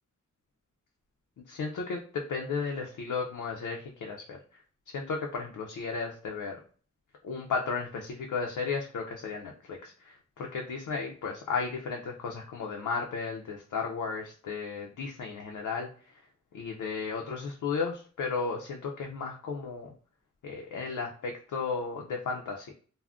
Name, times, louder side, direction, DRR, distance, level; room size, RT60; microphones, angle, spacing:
voice 1, 1.5-4.4 4.9-6.6 7.2-15.9 16.5-19.9 20.4-22.7, left 5 dB, 90° left, 0 dB, 0.5 m, -34 dB
3.5 x 2.1 x 2.3 m, 0.42 s
wide cardioid pair, 140°, 30 cm